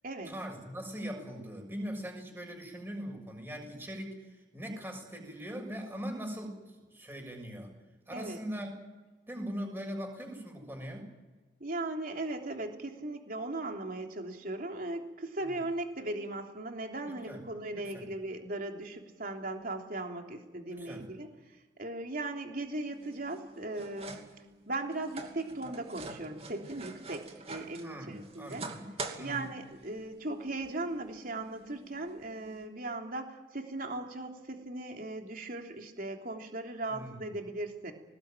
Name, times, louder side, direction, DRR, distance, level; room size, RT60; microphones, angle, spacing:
voice 1, 0.2-7.7 8.1-8.7 9.3-11.1 17.1-17.4 17.7-18.0 20.7-21.1 27.8-29.5 36.9-37.3, equal, 15° right, 2 dB, 6.6 m, -41 dB
voice 2, 11.6-24.2 24.7-28.6 29.2-37.9, right 2 dB, 55° right, 3 dB, 3.4 m, -38 dB
sound 1, 22.9-32.7, right 3 dB, 35° right, 2.7 m, -46 dB
21.5 x 20.0 x 9.2 m, 1.2 s
head